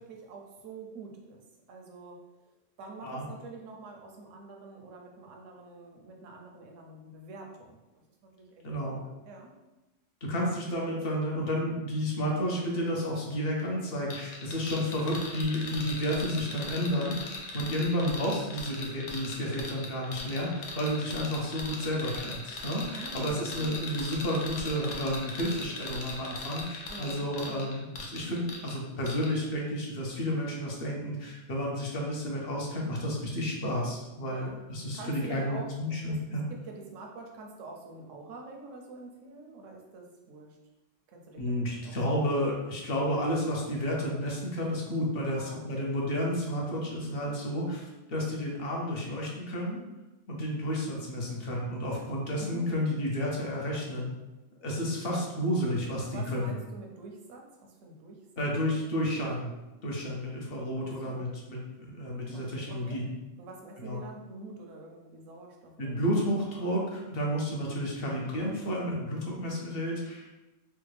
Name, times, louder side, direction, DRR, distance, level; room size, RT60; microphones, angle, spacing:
voice 1, 0.0-2.2 2.8-7.8 8.2-9.5 22.8-23.9 26.9-27.7 34.3-34.6 34.9-35.7 36.1-36.2 36.5-40.6 41.1-42.0 45.3-45.9 52.4-52.7 56.1-58.5 60.8-61.2 62.3-63.0 63.4-66.4, right 3 dB, 85° right, 1 dB, 1.0 m, -46 dB
voice 2, 8.6-9.0 10.2-17.3 17.5-36.4 41.4-49.8 50.3-54.1 54.6-56.6 58.4-59.5 59.8-63.1 63.8-64.0 65.8-70.3, equal, 55° left, -2 dB, 0.9 m, -31 dB
sound 1, 14.1-28.8 29.1-29.3, left 3 dB, 80° left, 1.0 m, -40 dB
3.3 x 2.2 x 3.2 m, 1.0 s
omnidirectional pair, 1.3 m